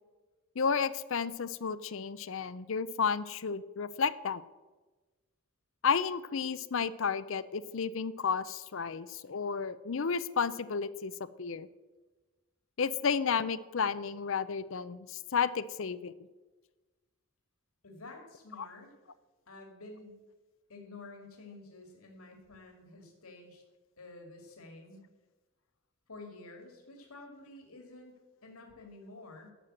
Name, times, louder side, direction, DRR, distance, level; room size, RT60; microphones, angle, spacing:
voice 1, 0.6-4.4 5.8-11.1 11.4-11.7 12.8-16.1, left 6 dB, 60° left, 15 dB, 0.5 m, -32 dB
voice 2, 17.8-18.9 19.5-20.2 20.7-23.6 24.0-25.1 26.1-28.1 28.4-29.5, left 2 dB, 75° left, 2 dB, 2.4 m, -50 dB
12.0 x 7.4 x 7.7 m, 1.2 s
head